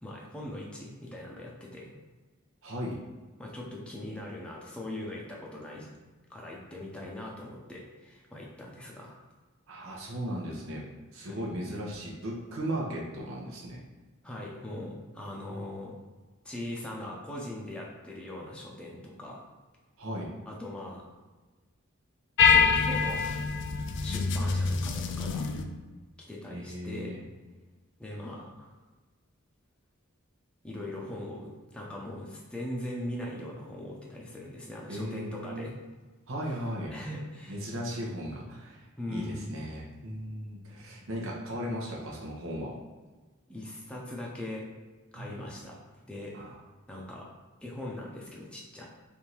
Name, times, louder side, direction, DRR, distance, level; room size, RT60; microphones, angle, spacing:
voice 1, 0.0-1.9 3.4-5.9 6.3-9.2 11.3-11.5 14.2-15.9 16.4-19.4 20.5-21.0 22.4-23.2 24.0-25.5 26.3-27.1 28.0-28.7 30.6-35.7 36.9-37.8 39.0-39.7 43.5-44.7 45.1-45.8 46.1-46.4 46.9-47.3 47.6-48.9, left 1 dB, 5° left, -4 dB, 0.6 m, -40 dB
voice 2, 2.6-3.0 9.7-10.8 11.1-13.8 15.3-15.6 20.0-20.3 26.5-27.2 34.9-35.7 36.3-36.9 37.5-38.8 39.1-42.7 45.1-45.4 46.3-46.6, equal, 70° right, -3 dB, 0.9 m, -36 dB
sound 1, 22.4-25.6, left 5 dB, 60° left, 0.4 m, -25 dB
3.5 x 2.6 x 4.4 m, 1.3 s
head